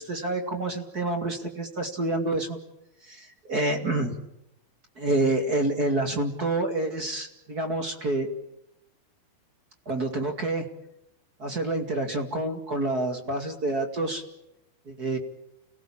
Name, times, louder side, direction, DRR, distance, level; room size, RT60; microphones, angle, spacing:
voice 1, 0.0-2.6 3.0-4.2 5.0-8.3 9.9-10.7 11.4-14.2 14.9-15.2, right 2 dB, 30° right, 4 dB, 2.1 m, -28 dB
29.5 x 18.0 x 8.6 m, 0.88 s
omnidirectional pair, 4.4 m